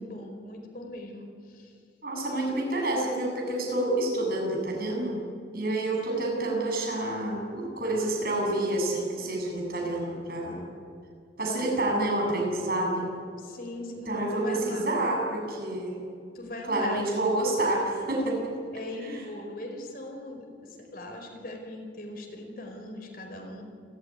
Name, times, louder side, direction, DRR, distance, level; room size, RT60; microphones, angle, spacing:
voice 1, 0.0-1.7 6.1-6.5 13.4-14.9 16.3-17.0 18.7-23.6, left 1 dB, 50° left, 3 dB, 4.8 m, -40 dB
voice 2, 2.0-5.2 5.5-10.6 11.4-13.1 14.1-16.1 16.7-18.5, right 1 dB, 55° right, 0 dB, 7.3 m, -28 dB
28.5 x 14.5 x 9.8 m, 2.4 s
head